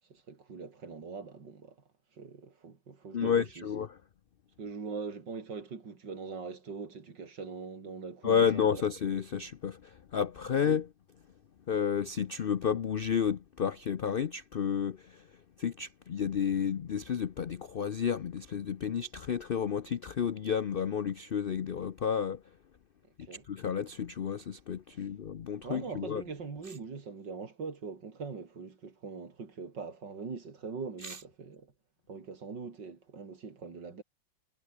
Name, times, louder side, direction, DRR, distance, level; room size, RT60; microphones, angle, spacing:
voice 1, 0.1-1.8 2.1-3.7 4.6-8.8 23.2-23.5 24.9-25.1 25.6-31.7 32.1-34.0, right 5 dB, 85° right, 3.7 m, -42 dB
voice 2, 3.1-4.0 8.2-10.9 11.7-15.3 15.6-22.4 23.5-26.2 31.0-31.2, left 7 dB, 80° left, 0.5 m, -31 dB
omnidirectional pair, 1.9 m